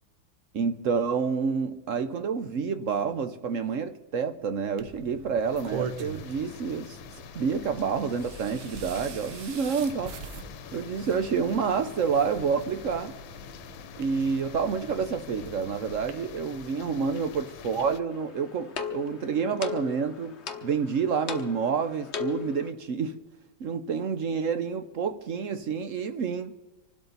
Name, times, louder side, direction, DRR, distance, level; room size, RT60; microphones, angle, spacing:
voice 1, 0.5-7.0 7.3-10.2 10.7-13.2 14.0-20.4 20.6-23.2 23.6-26.5, right 6 dB, 60° right, 0.8 m, -28 dB
sound 1, 4.8-16.1, right 6 dB, 80° right, 1.8 m, -43 dB
sound 2, 5.4-18.0, left 9 dB, 75° left, 1.5 m, -45 dB
sound 3, 18.1-22.7, left 7 dB, 45° left, 1.0 m, -37 dB
26.5 x 12.0 x 4.0 m
omnidirectional pair, 2.2 m